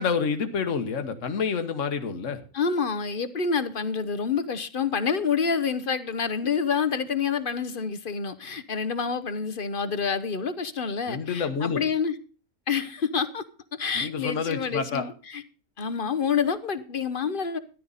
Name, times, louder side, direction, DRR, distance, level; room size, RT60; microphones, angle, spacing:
voice 1, 0.0-2.4 11.1-11.8 13.9-15.1, left 5 dB, 65° left, 1.6 m, -28 dB
voice 2, 2.5-12.2 12.7-13.4 13.7-15.4 15.8-17.6, left 6 dB, 45° left, 1.0 m, -28 dB
14.0 x 11.0 x 4.1 m
omnidirectional pair, 1.4 m